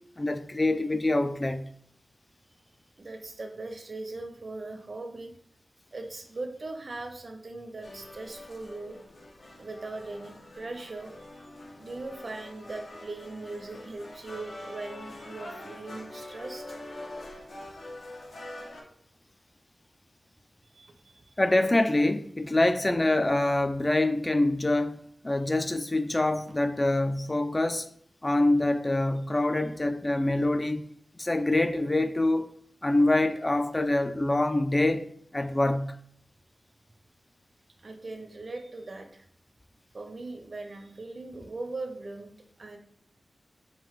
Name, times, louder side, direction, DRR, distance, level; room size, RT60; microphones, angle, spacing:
voice 1, 0.2-1.7 21.4-27.9 28.2-32.5 32.8-36.0, left 2 dB, 25° left, 0.3 m, -25 dB
voice 2, 3.0-5.3 5.9-9.0 9.6-11.3 11.8-16.8 20.7-21.3 37.8-39.3 39.9-42.8, right 2 dB, 50° right, 0.6 m, -40 dB
sound 1, 7.8-18.8, left 1 dB, 75° left, 0.9 m, -44 dB
3.8 x 2.5 x 4.5 m
wide cardioid pair, 105°, 0 cm